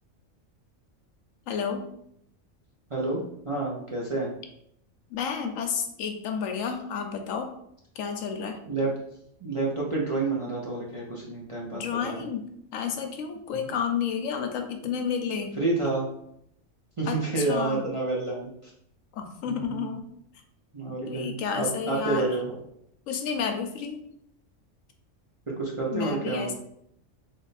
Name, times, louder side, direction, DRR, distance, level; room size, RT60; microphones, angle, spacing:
voice 1, 1.5-1.9 5.1-7.5 8.0-8.6 11.7-15.6 17.1-17.9 19.1-20.0 21.1-22.3 23.1-24.0 25.9-26.5, left 6 dB, 85° left, 5 dB, 1.0 m, -31 dB
voice 2, 2.9-4.3 8.7-8.9 9.4-12.1 15.6-16.1 17.0-18.7 19.5-19.9 20.7-22.5 25.5-26.5, right 3 dB, 35° right, -4 dB, 0.6 m, -29 dB
3.4 x 2.6 x 4.0 m, 0.73 s
omnidirectional pair, 1.3 m